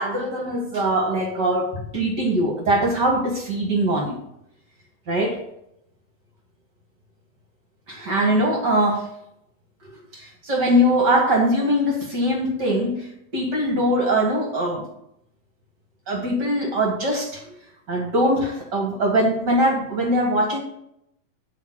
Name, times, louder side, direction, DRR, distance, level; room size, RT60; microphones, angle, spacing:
voice 1, 0.0-4.2 5.1-5.4 7.9-9.1 10.1-14.8 16.1-17.4 17.9-20.6, right 1 dB, 40° right, 0 dB, 1.9 m, -22 dB
11.5 x 4.3 x 7.7 m, 0.79 s
omnidirectional pair, 3.8 m